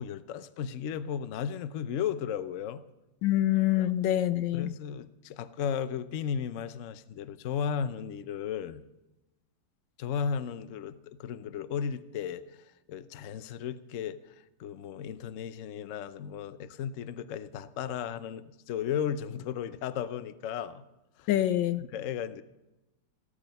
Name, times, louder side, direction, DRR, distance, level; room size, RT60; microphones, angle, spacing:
voice 1, 0.0-2.8 3.8-3.9 4.5-8.8 10.0-20.8 21.2-21.3 21.8-22.4, left 8 dB, 60° left, 0.9 m, -35 dB
voice 2, 3.2-4.7 21.3-21.8, left 13 dB, 85° left, 1.4 m, -26 dB
16.0 x 13.5 x 5.4 m
omnidirectional pair, 2.0 m